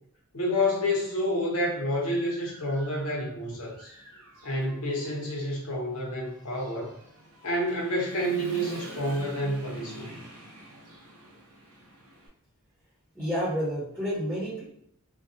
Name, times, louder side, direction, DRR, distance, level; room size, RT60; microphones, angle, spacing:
voice 1, 0.3-3.9 4.4-7.0 7.4-10.1, left 1 dB, 70° left, -2 dB, 0.8 m, -29 dB
Human voice / Motorcycle, 1.0-1.1 1.6-3.3 3.7-12.3, right 1 dB, 60° right, 0.6 m, -46 dB
voice 2, 13.1-14.6, equal, 10° right, -10 dB, 1.1 m, -29 dB
2.2 x 2.2 x 2.7 m, 0.67 s
head